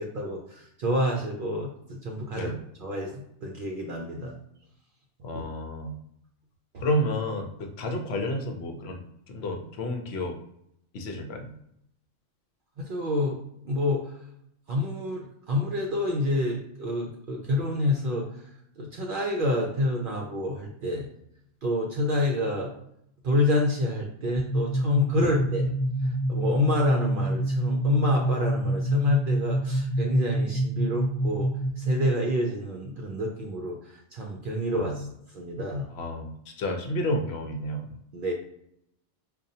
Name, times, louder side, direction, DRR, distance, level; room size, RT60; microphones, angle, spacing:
voice 1, 0.0-2.5 2.8-4.3 6.7-6.8 12.8-13.4 13.6-14.2 14.7-18.5 18.8-21.1 21.6-22.7 23.2-25.7 26.0-31.5 31.8-35.1 35.3-35.9 38.1-38.3, left 1 dB, 60° right, 0 dB, 0.6 m, -28 dB
voice 2, 5.2-6.0 6.8-10.4 10.9-11.5 25.2-25.3 34.7-35.1 35.9-37.9, left 1 dB, 65° left, 4 dB, 0.8 m, -31 dB
sound 1, 24.4-31.9, right 1 dB, 35° left, 0.4 m, -27 dB
5.0 x 2.3 x 2.7 m, 0.75 s
omnidirectional pair, 1.3 m